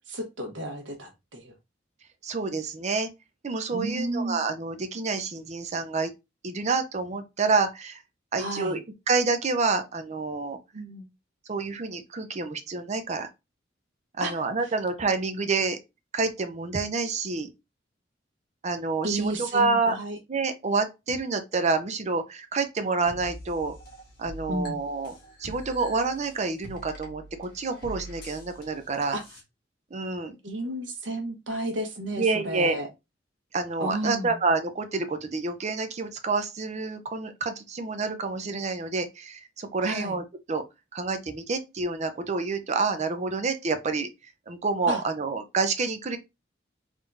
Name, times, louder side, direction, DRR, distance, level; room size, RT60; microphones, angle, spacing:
voice 1, 0.0-1.5 3.7-4.4 8.4-8.7 10.7-11.1 14.2-14.3 19.0-20.2 24.5-24.8 29.1-29.2 30.4-32.9 33.8-34.4 39.8-40.2 44.9-45.0, right 1 dB, 75° right, 1.1 m, -32 dB
voice 2, 2.2-3.1 3.4-6.1 6.4-8.0 8.3-10.6 11.5-13.3 14.2-15.8 16.1-17.5 18.6-20.0 20.3-23.7 24.2-25.1 25.4-29.2 29.9-30.4 32.2-32.8 33.5-40.6 40.9-44.1 44.5-46.2, right 4 dB, 40° right, 0.5 m, -28 dB
sound 1, 23.1-29.4, right 1 dB, 55° left, 1.5 m, -45 dB
3.7 x 2.7 x 3.4 m
head